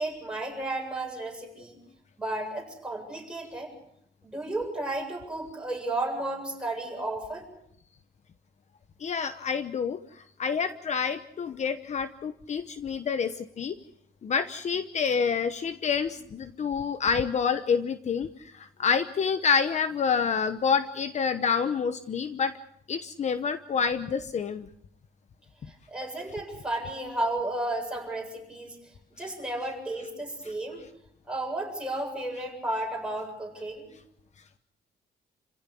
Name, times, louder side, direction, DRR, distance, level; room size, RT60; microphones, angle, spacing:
voice 1, 0.0-1.8 2.2-3.7 4.2-7.4 25.7-28.8 29.1-30.8 31.3-33.9, right 2 dB, 5° right, 0 dB, 7.7 m, -33 dB
voice 2, 9.0-10.0 10.4-13.7 14.2-18.3 18.5-22.5 22.9-24.7, left 6 dB, 40° left, 11 dB, 1.0 m, -28 dB
29.0 x 16.5 x 8.4 m, 0.71 s
cardioid pair, 145°, 17 cm